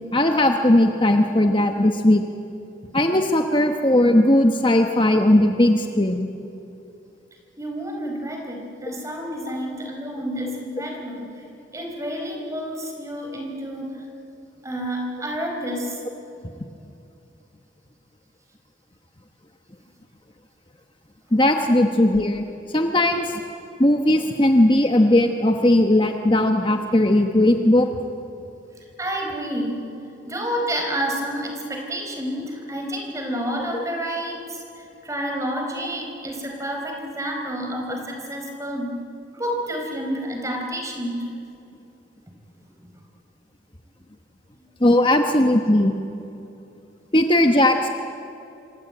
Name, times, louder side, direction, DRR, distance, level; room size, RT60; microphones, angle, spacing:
voice 1, 0.1-2.2 2.9-6.3 21.3-22.5 22.7-23.4 23.8-27.9 33.7-33.8 44.8-45.9 47.1-47.9, left 1 dB, 25° left, 4 dB, 1.1 m, -18 dB
voice 2, 7.6-11.4 11.7-14.0 14.6-16.0 29.0-29.9 30.2-39.0 39.3-41.2 42.8-42.9, equal, 15° right, 2 dB, 4.5 m, -29 dB
27.0 x 25.0 x 8.8 m, 2.8 s
head